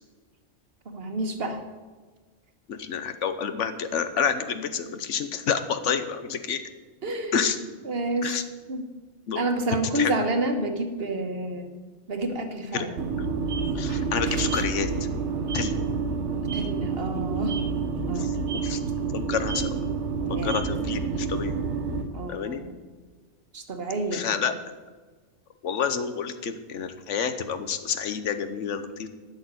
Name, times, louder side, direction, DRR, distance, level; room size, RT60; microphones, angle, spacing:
voice 1, 0.8-1.6 7.0-7.5 7.8-8.4 8.7-8.8 9.3-11.8 12.1-13.0 16.3-17.6 18.1-18.4 20.3-20.6 22.1-22.8 23.5-24.3, right 2 dB, 55° right, 6 dB, 1.6 m, -29 dB
voice 2, 2.7-6.6 7.3-7.6 8.2-8.4 9.3-9.5 9.9-10.1 12.7-12.9 13.7-14.9 15.5-15.7 18.2-18.3 18.6-18.8 19.1-19.7 20.3-21.5 22.3-22.6 24.1-24.5 25.6-29.1, left 7 dB, 85° left, 10 dB, 1.2 m, -28 dB
sound 1, 13.0-22.0, right 5 dB, 75° right, 1.4 m, -28 dB
12.0 x 6.5 x 9.6 m, 1.4 s
omnidirectional pair, 1.2 m